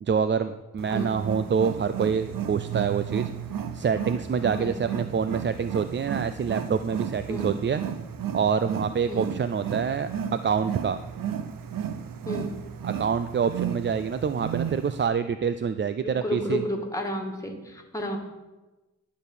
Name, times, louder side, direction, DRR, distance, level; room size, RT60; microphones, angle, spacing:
voice 1, 0.0-3.3 3.7-7.8 8.3-11.0 12.8-16.6, right 6 dB, 35° right, 11 dB, 0.4 m, -26 dB
Wild animals, 0.8-15.1, right 8 dB, 85° right, 0.7 m, -33 dB
voice 2, 12.3-12.6 16.0-18.2, equal, 10° left, 2 dB, 1.8 m, -31 dB
11.5 x 4.6 x 6.9 m, 1.1 s
wide cardioid pair, 90°, 33 cm